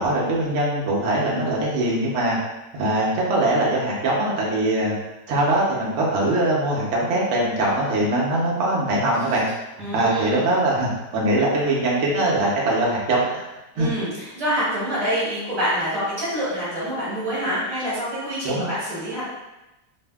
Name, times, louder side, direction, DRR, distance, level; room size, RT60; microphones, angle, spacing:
voice 1, 0.0-2.4 2.7-4.9 5.3-9.5 9.9-13.4 13.8-13.9 18.4-18.7, right 1 dB, 60° right, -4 dB, 0.7 m, -22 dB
voice 2, 9.8-10.6 13.7-19.2, equal, 20° right, -10 dB, 0.9 m, -26 dB
2.6 x 2.5 x 2.2 m, 1.0 s
omnidirectional pair, 1.9 m